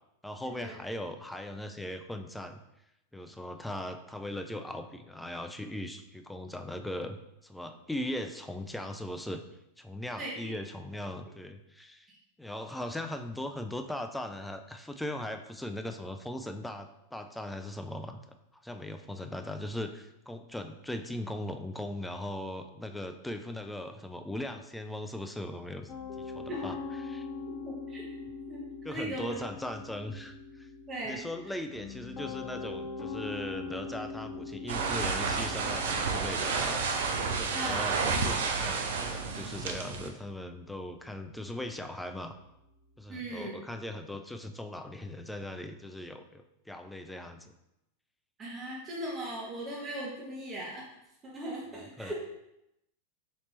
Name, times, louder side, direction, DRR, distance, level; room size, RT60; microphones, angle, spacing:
voice 1, 0.2-2.6 3.1-7.2 7.4-9.4 9.8-12.1 12.4-18.2 18.5-25.9 26.2-26.8 27.0-27.3 28.8-30.7 31.0-36.9 37.3-42.3 43.0-47.5 52.0-52.1, left 1 dB, 5° left, 6 dB, 0.3 m, -39 dB
voice 2, 10.2-10.5 26.5-26.6 27.6-28.1 28.5-29.3 30.9-31.2 37.5-37.8 43.1-43.5 48.4-50.8 51.2-52.1, right 1 dB, 20° right, -5 dB, 1.0 m, -38 dB
Piano, 25.9-43.0, left 4 dB, 35° left, 0.7 m, -43 dB
sound 1, 34.7-40.1, right 4 dB, 60° right, 0.4 m, -31 dB
4.0 x 2.9 x 3.1 m, 0.85 s
figure-of-eight pair, 90°, 0 cm